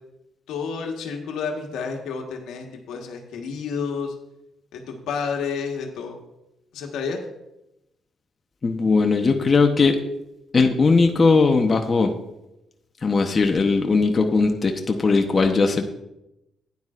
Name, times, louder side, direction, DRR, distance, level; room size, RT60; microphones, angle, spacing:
voice 1, 0.5-4.1 4.7-6.2 6.7-7.2, left 5 dB, 85° left, 2 dB, 1.4 m, -30 dB
voice 2, 8.6-10.0 10.5-12.1 13.0-15.9, left 4 dB, 35° left, 4 dB, 0.9 m, -19 dB
12.0 x 9.7 x 2.5 m, 0.90 s
cardioid pair, 90°, 0 cm